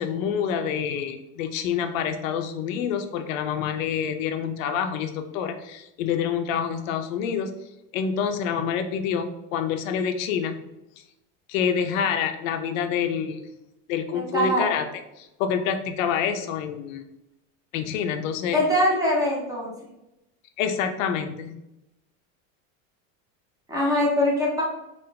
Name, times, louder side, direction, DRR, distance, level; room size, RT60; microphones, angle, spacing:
voice 1, 0.0-7.5 7.9-10.6 11.5-13.4 13.9-14.9 15.2-17.0 17.7-18.6 20.6-21.6, left 7 dB, 80° left, 8 dB, 0.6 m, -27 dB
voice 2, 14.1-14.6 18.5-19.7 23.7-24.6, left 1 dB, 10° right, -4 dB, 0.5 m, -22 dB
3.9 x 2.5 x 3.3 m, 0.90 s
supercardioid pair, 165°, 39 cm